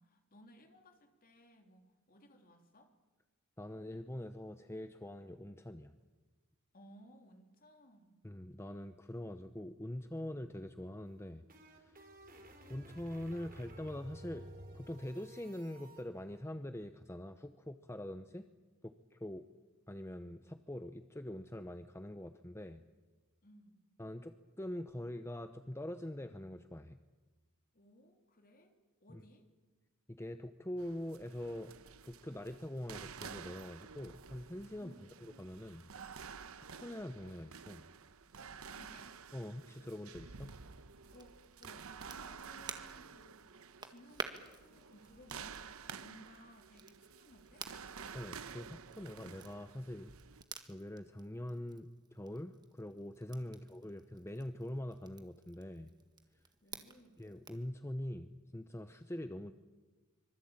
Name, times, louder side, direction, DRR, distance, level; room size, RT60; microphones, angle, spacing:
voice 1, 0.0-2.9 6.7-8.2 23.4-23.8 27.7-29.5 34.8-35.1 38.5-39.1 41.1-41.3 41.6-43.4 43.8-47.7 56.6-57.2, equal, 40° left, 4 dB, 3.1 m, -61 dB
voice 2, 3.6-5.9 8.2-11.4 11.7-12.0 12.7-14.5 14.7-18.5 18.8-19.4 19.9-22.8 24.0-27.0 29.1-29.2 30.1-31.7 32.0-34.9 35.2-35.9 36.6-37.9 39.3-40.5 48.1-50.1 50.7-55.9 57.2-59.5, left 1 dB, 10° left, 8 dB, 0.8 m, -44 dB
sound 1, 11.1-16.0, right 1 dB, 40° right, 3.8 m, -54 dB
sound 2, 30.8-50.4, right 6 dB, 70° right, 1.0 m, -51 dB
Crackle, 41.0-57.7, right 4 dB, 20° right, 1.7 m, -52 dB
25.5 x 23.5 x 8.9 m, 1.3 s
head